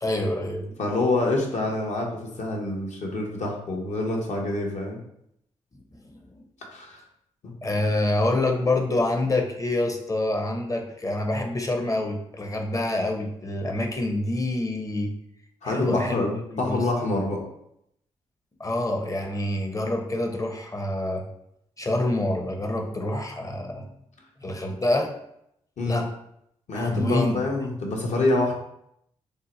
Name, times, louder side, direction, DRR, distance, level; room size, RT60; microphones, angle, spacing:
voice 1, 0.0-0.7 5.9-6.2 7.6-15.1 15.6-16.2 16.5-16.9 18.6-21.3 21.8-23.9 24.4-25.1 25.9-26.1 26.7-27.4, left 1 dB, 25° left, 3 dB, 0.7 m, -26 dB
voice 2, 0.8-5.0 6.7-7.0 7.4-7.5 15.6-17.4 25.8-26.1 26.7-28.5, left 2 dB, 60° left, 0 dB, 0.8 m, -26 dB
2.7 x 2.1 x 4.0 m, 0.76 s
supercardioid pair, 50°, 13 cm